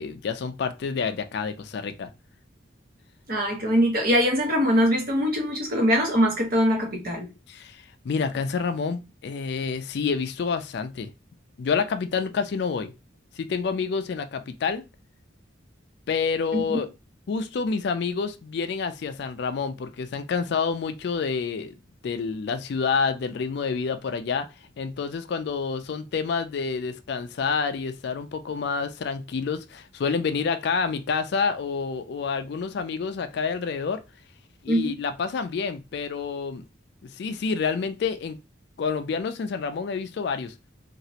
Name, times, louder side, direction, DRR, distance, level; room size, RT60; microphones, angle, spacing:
voice 1, 0.0-2.1 7.5-11.1 11.6-12.9 13.4-14.8 16.1-16.9 17.3-21.7 22.0-24.5 24.8-34.0 34.6-36.6 37.0-38.4 38.8-40.5, left 5 dB, 60° left, 0.3 m, -28 dB
voice 2, 3.3-7.3 16.5-16.8 34.7-35.0, equal, 50° right, 0.9 m, -22 dB
3.0 x 2.4 x 2.8 m
head